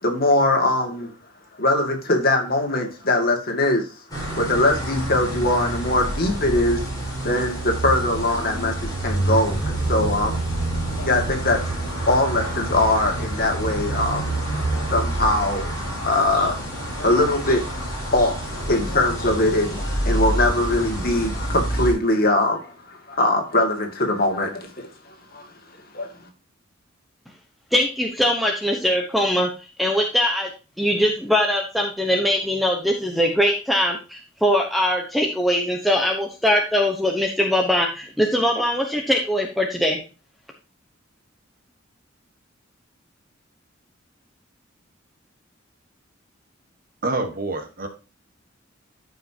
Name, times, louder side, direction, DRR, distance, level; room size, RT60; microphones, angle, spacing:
voice 1, 0.0-1.1 1.6-3.9 4.4-10.4 11.0-11.7 12.1-14.4 14.9-25.5 25.9-26.1, left 2 dB, 50° left, 3 dB, 2.2 m, -22 dB
sound 1, 4.1-21.9, right 1 dB, 20° left, 4.6 m, -27 dB
voice 2, 27.7-29.5 29.8-30.5 30.8-40.0, equal, ahead, 2 dB, 1.0 m, -21 dB
voice 3, 47.0-47.9, right 2 dB, 45° right, 6 dB, 1.5 m, -26 dB
13.5 x 5.4 x 2.8 m, 0.32 s
head